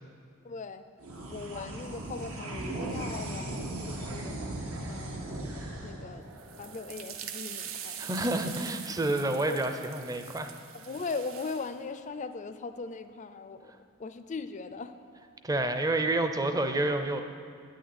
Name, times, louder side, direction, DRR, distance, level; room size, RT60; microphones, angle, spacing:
voice 1, 0.4-0.8 1.3-4.4 4.9-5.4 5.8-6.2 6.6-8.1 9.5-9.6 10.7-13.7 14.0-15.0, left 4 dB, 35° left, 11 dB, 0.4 m, -39 dB
sound 1, 1.0-7.7, right 1 dB, 85° right, 1.5 m, -38 dB
sound 2, 6.3-11.7, right 9 dB, 70° right, 0.6 m, -43 dB
voice 2, 8.0-10.5 15.4-17.2, right 2 dB, 15° right, 7 dB, 0.5 m, -29 dB
9.0 x 6.4 x 8.5 m, 2.3 s
head